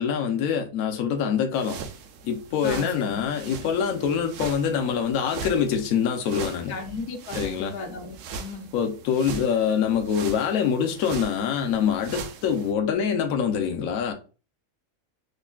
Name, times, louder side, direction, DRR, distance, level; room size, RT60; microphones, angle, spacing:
voice 1, 0.0-1.8 2.2-6.8 7.3-7.8 8.7-14.1, left 7 dB, 75° left, 1.0 m, -25 dB
sound 1, 1.5-12.7, right 5 dB, 90° right, 1.1 m, -40 dB
voice 2, 2.6-3.2 6.7-8.7, left 4 dB, 90° left, 1.3 m, -36 dB
3.7 x 3.1 x 2.2 m
omnidirectional pair, 1.6 m